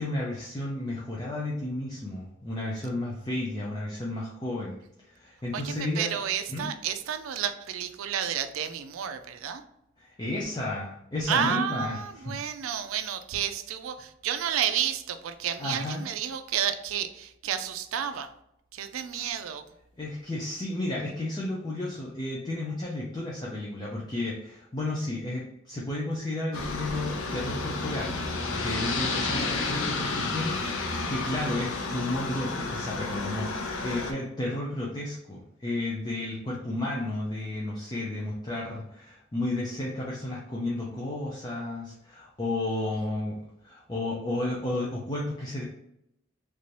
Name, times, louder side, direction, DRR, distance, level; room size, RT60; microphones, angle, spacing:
voice 1, 0.0-6.1 6.5-6.7 10.0-12.4 15.6-16.1 19.1-19.3 20.0-28.2 28.6-43.4 43.6-45.6, left 1 dB, 20° left, -4 dB, 0.5 m, -32 dB
voice 2, 5.5-9.6 11.3-18.3 18.7-19.6, right 9 dB, 80° right, 9 dB, 0.4 m, -31 dB
Aircraft, 26.5-34.1, left 3 dB, 75° left, 0.6 m, -31 dB
3.3 x 2.7 x 3.2 m, 0.79 s
head